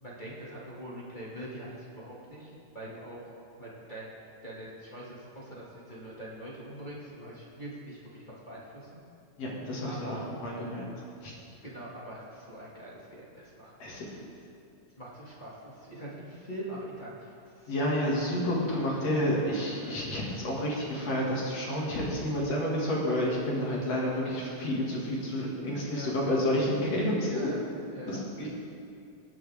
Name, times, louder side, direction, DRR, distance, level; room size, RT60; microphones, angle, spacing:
voice 1, 0.0-3.2 3.6-4.1 4.4-9.0 9.8-10.2 11.6-13.7 14.2-14.3 15.0-17.7 19.1-19.3 19.7-20.0 25.9-26.1 27.2-27.6 27.9-28.5, right 1 dB, 20° left, -6 dB, 1.5 m, -43 dB
voice 2, 9.4-10.9 11.2-11.3 13.8-14.0 17.7-27.5 28.1-28.5, left 1 dB, 55° left, -4 dB, 3.1 m, -30 dB
20.5 x 7.7 x 3.6 m, 2.5 s
omnidirectional pair, 3.8 m